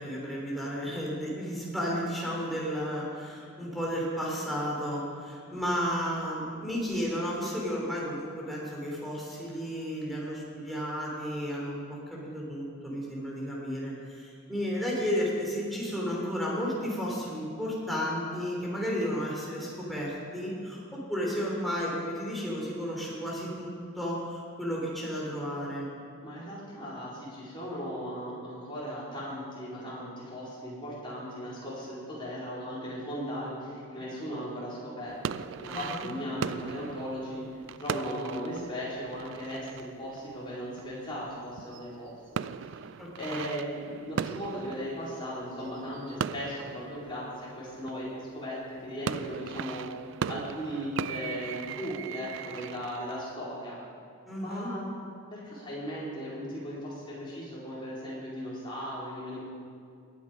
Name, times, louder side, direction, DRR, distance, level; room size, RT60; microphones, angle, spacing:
voice 1, 0.0-23.7 23.9-25.9 35.7-36.1 43.0-43.5 54.3-54.7, equal, ahead, -5 dB, 3.3 m, -33 dB
voice 2, 26.2-37.5 37.8-42.5 43.1-49.9 50.3-53.8 54.4-54.9 55.3-59.4, equal, 25° left, -8 dB, 4.4 m, -37 dB
sound 1, 35.1-41.3 41.6-48.3 48.8-53.3, right 7 dB, 60° right, 0.3 m, -38 dB
18.5 x 9.4 x 5.3 m, 2.3 s
head